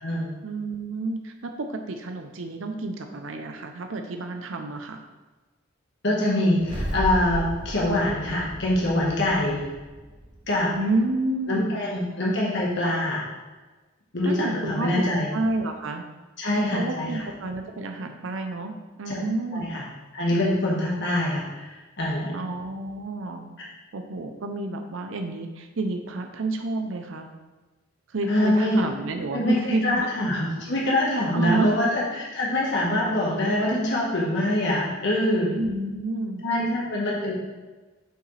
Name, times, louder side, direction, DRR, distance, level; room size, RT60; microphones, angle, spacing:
voice 1, 0.4-5.0 10.7-11.8 14.2-16.0 16.7-19.7 22.3-23.5 23.9-27.3 28.1-30.1 31.3-31.8 35.5-36.5, right 2 dB, 70° right, 5 dB, 0.6 m, -30 dB
voice 2, 6.0-9.6 10.5-10.7 11.5-13.2 14.1-15.3 16.4-17.2 19.1-19.2 19.5-19.8 20.1-22.4 28.3-28.8 29.3-35.6 36.4-37.3, left 1 dB, 60° left, -4 dB, 1.4 m, -24 dB
sound 1, 6.6-10.9, equal, 25° right, 0.8 m, -34 dB
7.7 x 4.9 x 3.3 m, 1.2 s
head